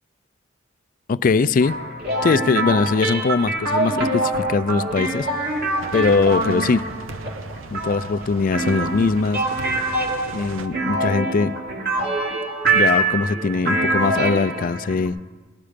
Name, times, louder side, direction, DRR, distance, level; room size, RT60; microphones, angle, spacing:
voice 1, 1.1-1.8 2.2-5.3 5.9-6.8 7.7-9.4 10.3-11.6 12.7-15.2, left 4 dB, 45° left, 16 dB, 0.4 m, -21 dB
sound 1, 1.6-15.1, right 2 dB, 50° right, 2.6 m, -24 dB
sound 2, 5.2-10.7, right 3 dB, 90° right, 0.8 m, -36 dB
19.5 x 11.5 x 5.1 m, 1.3 s
head